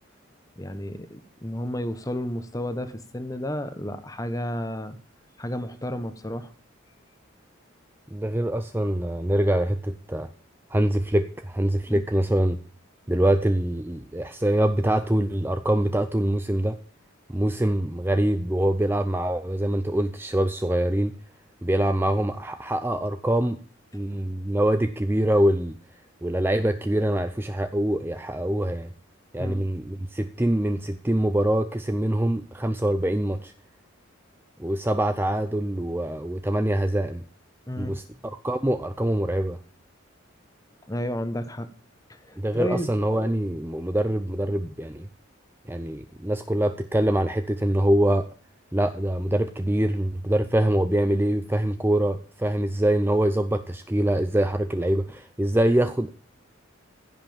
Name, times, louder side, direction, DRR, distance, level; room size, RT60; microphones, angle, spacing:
voice 1, 0.6-5.0 5.4-6.5 11.9-12.0 29.4-29.6 37.7-37.9 40.9-41.7 42.3-42.9, equal, 15° left, 10 dB, 1.2 m, -31 dB
voice 2, 8.1-10.3 10.7-12.6 13.1-16.8 17.3-21.1 21.6-23.6 23.9-25.7 26.2-28.9 29.3-33.5 34.6-37.2 37.8-38.0 38.4-39.6 42.4-45.1 45.7-48.2 48.7-56.1, right 1 dB, 10° right, 9 dB, 0.5 m, -24 dB
15.5 x 5.8 x 7.1 m, 0.43 s
head